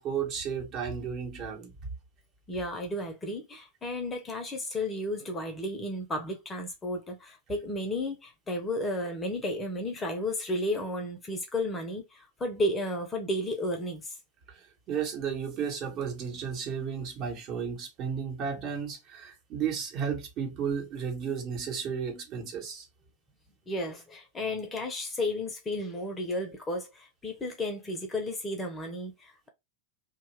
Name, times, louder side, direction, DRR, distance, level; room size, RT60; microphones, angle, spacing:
voice 1, 0.0-1.7 14.5-22.9, right 7 dB, 35° right, 1.2 m, -33 dB
voice 2, 2.5-14.2 23.7-29.5, left 1 dB, 15° left, 0.8 m, -33 dB
2.8 x 2.4 x 3.1 m
figure-of-eight pair, 90°, 0 cm